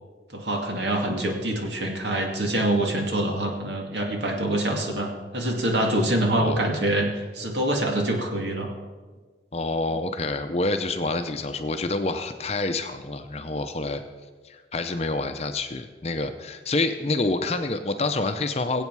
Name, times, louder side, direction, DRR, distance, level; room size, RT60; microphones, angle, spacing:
voice 1, 0.3-8.7, right 1 dB, 80° right, 1 dB, 2.3 m, -25 dB
voice 2, 9.5-14.0 14.4-18.8, left 2 dB, 35° left, 7 dB, 0.6 m, -27 dB
22.0 x 8.3 x 4.7 m, 1.4 s
head